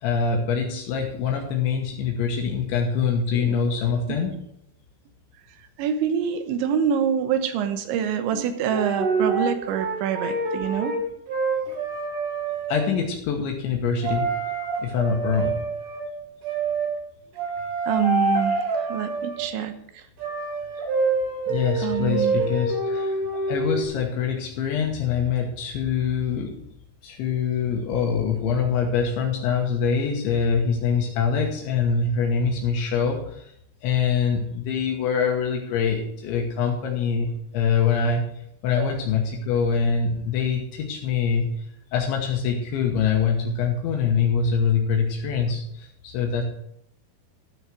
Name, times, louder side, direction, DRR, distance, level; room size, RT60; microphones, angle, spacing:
voice 1, 0.0-4.3 12.7-14.3 14.8-15.6 21.5-26.6 27.0-33.5 33.8-38.2 38.6-41.7 41.9-46.4, left 6 dB, 75° left, 1 dB, 3.5 m, -24 dB
voice 2, 3.3-3.8 4.1-4.2 5.8-11.0 17.8-20.0 21.8-22.4 38.8-38.9, right 8 dB, 75° right, 9 dB, 3.2 m, -26 dB
sound 1, 8.3-8.4 8.7-11.0 11.3-12.9 14.0-16.0 16.4-16.9 17.4-19.4 20.2-23.8, right 3 dB, 60° right, 4.1 m, -26 dB
13.5 x 6.5 x 6.3 m, 0.72 s
omnidirectional pair, 5.6 m